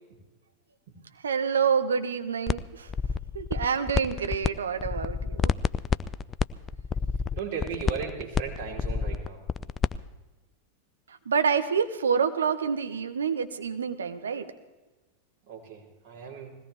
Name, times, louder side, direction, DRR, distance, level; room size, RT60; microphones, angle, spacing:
voice 1, 1.2-2.9 3.3-5.5 11.1-14.5, right 6 dB, 70° right, 9 dB, 1.0 m, -27 dB
sound 1, 2.5-2.6 2.9-4.5 4.8-10.0, left 6 dB, 20° left, 0.4 m, -28 dB
voice 2, 7.3-9.4 15.5-16.6, right 6 dB, 55° right, -3 dB, 4.2 m, -36 dB
21.0 x 17.0 x 3.5 m, 1.2 s
figure-of-eight pair, 90°, 0 cm